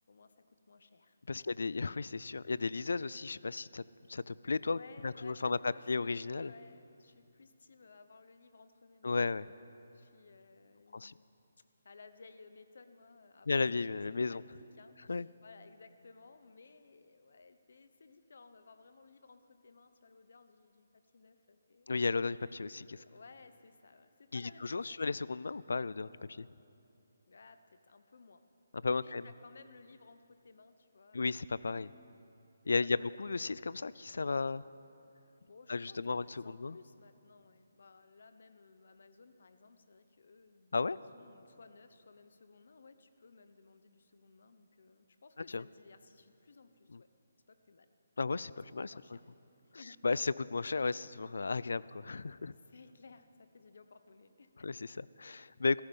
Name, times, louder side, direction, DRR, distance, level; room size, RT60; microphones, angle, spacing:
voice 1, 0.1-1.5 2.3-2.5 4.6-9.7 9.9-11.2 11.8-21.9 23.0-25.0 27.3-28.4 28.9-31.3 31.6-31.7 32.6-33.1 35.5-47.1 47.5-47.9 48.8-49.2 49.6-50.0 52.6-54.7, left 4 dB, 60° left, 10 dB, 1.0 m, -58 dB
voice 2, 1.3-3.8 4.1-6.5 9.0-9.5 10.9-11.1 13.5-14.4 15.1-15.3 21.9-23.0 24.3-26.5 28.8-29.3 31.1-31.9 32.7-34.6 35.7-36.8 40.7-41.0 45.5-45.6 46.9-47.0 48.2-48.9 50.0-52.5 54.6-55.8, left 4 dB, 80° left, 19 dB, 0.4 m, -34 dB
18.5 x 14.5 x 5.4 m, 2.7 s
hypercardioid pair, 170°, 0 cm